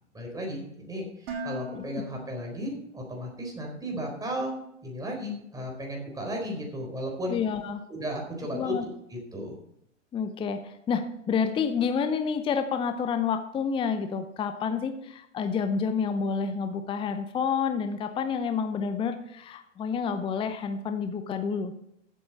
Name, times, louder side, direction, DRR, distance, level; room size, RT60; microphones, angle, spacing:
voice 1, 0.1-4.6 4.8-7.4 7.9-9.6, equal, 10° right, 0 dB, 4.1 m, -34 dB
Dishes pots and pans, 1.3-3.3, equal, 50° right, 4.1 m, -40 dB
voice 2, 7.3-7.8 8.5-8.8 10.1-21.8, left 6 dB, 15° left, 9 dB, 0.7 m, -29 dB
15.0 x 8.4 x 4.2 m, 0.77 s
figure-of-eight pair, 100°, 37 cm